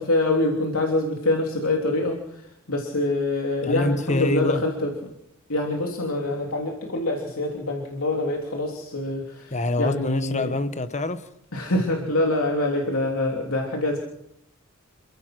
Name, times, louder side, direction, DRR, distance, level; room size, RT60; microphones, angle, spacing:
voice 1, 0.0-4.9 5.5-10.5 11.5-14.0, left 2 dB, 85° left, 3.2 m, -25 dB
voice 2, 3.6-4.6 9.5-11.3, left 2 dB, 35° left, 1.2 m, -25 dB
28.0 x 16.5 x 6.2 m
head